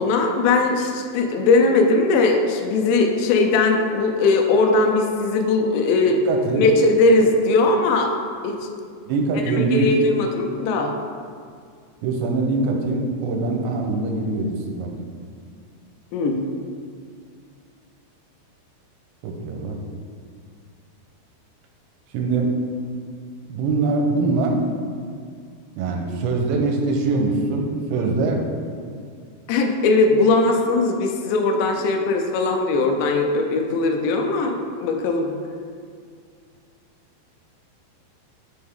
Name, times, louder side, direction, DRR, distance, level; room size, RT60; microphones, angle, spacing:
voice 1, 0.0-6.2 6.6-8.1 8.4-8.6 9.3-10.9 16.1-16.4 29.5-34.5 34.8-35.3, left 3 dB, 90° left, 3 dB, 3.0 m, -19 dB
voice 2, 6.3-6.7 9.1-9.9 12.0-14.9 19.2-19.8 22.1-22.5 23.5-24.6 25.8-28.4, right 3 dB, 85° right, 2 dB, 3.0 m, -23 dB
7.7 x 6.3 x 3.6 m, 2.1 s
omnidirectional pair, 5.0 m